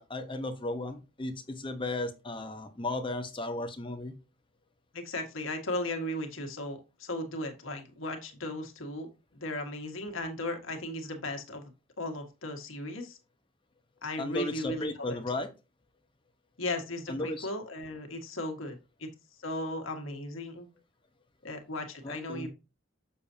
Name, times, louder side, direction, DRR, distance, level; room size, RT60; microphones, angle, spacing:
voice 1, 0.1-4.1 14.2-15.5 17.1-17.5 22.0-22.5, left 2 dB, 25° left, 6 dB, 1.0 m, -35 dB
voice 2, 4.9-13.2 14.0-15.2 16.6-19.1 19.4-20.7 21.4-22.5, left 1 dB, 85° left, 4 dB, 1.8 m, -36 dB
6.9 x 6.8 x 2.8 m, 0.29 s
head